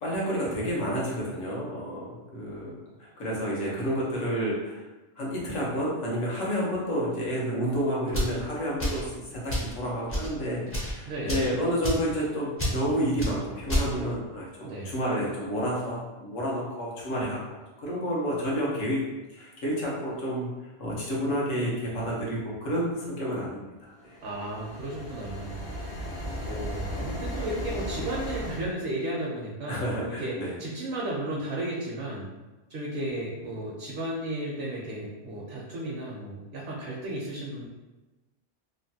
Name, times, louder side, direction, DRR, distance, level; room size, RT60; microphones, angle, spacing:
voice 1, 0.0-4.8 5.2-17.4 17.8-19.0 19.3-20.5 20.8-23.9 29.7-30.5, equal, 85° left, -5 dB, 1.2 m, -30 dB
sound 1, 8.1-8.4 8.8-9.1 9.5-9.7 10.1-10.3 10.7-10.9 11.3-11.5 11.8-12.1 12.6-12.8 13.2-13.3 13.7-13.9, equal, 15° left, 0.4 m, -28 dB
voice 2, 11.1-11.4 14.6-14.9 24.2-25.7 26.5-32.3 32.7-37.7, right 1 dB, 60° right, -4 dB, 0.8 m, -34 dB
sound 2, 24.0-28.7, equal, 60° left, 0.8 m, -35 dB
3.1 x 2.2 x 2.7 m, 1.1 s
omnidirectional pair, 1.3 m